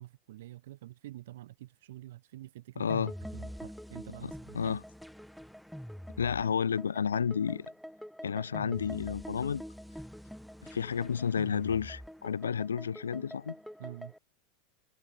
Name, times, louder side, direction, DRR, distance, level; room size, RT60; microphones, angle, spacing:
voice 1, 0.0-3.0 3.3-4.8 13.8-14.1, right 15 dB, 70° right, 2.9 m, -47 dB
voice 2, 2.8-3.1 4.2-4.8 6.2-7.7 8.2-9.6 10.6-13.6, left 7 dB, 85° left, 0.6 m, -31 dB
sound 1, 2.9-14.2, equal, ahead, 3.7 m, -45 dB
hypercardioid pair, 80°, 0 cm